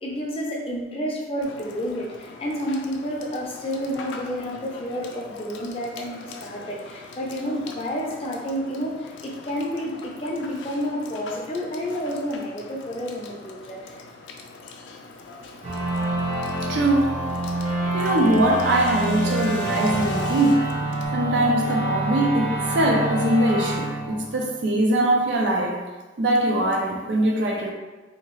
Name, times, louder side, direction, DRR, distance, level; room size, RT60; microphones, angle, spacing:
voice 1, 0.0-14.0, equal, 30° left, -2 dB, 0.5 m, -30 dB
Water / Water tap faucet / Sink (filling or washing), 1.4-21.1, left 3 dB, 85° left, 0.4 m, -42 dB
sound 1, 15.6-25.0, right 1 dB, 40° right, 0.8 m, -27 dB
voice 2, 16.7-17.3 17.9-20.7 21.1-25.8 26.2-27.7, right 1 dB, 70° right, 0 dB, 0.4 m, -22 dB
2.8 x 2.3 x 3.0 m, 1.2 s
head